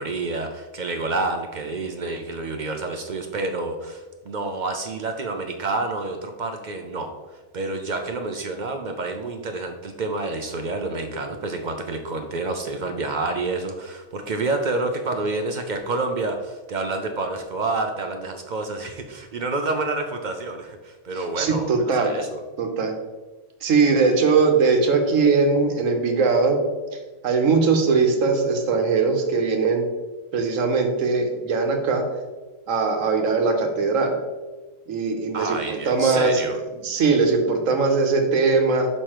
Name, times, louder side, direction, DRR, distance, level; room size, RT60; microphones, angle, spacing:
voice 1, 0.0-22.4 35.3-36.6, right 3 dB, 60° right, 5 dB, 0.5 m, -28 dB
voice 2, 21.4-22.1 22.6-22.9 23.6-26.6 27.2-29.8 30.3-32.0 32.7-34.1 34.9-36.4 36.8-38.9, right 4 dB, 85° right, 4 dB, 1.3 m, -20 dB
6.5 x 5.3 x 3.0 m, 1.2 s
omnidirectional pair, 1.3 m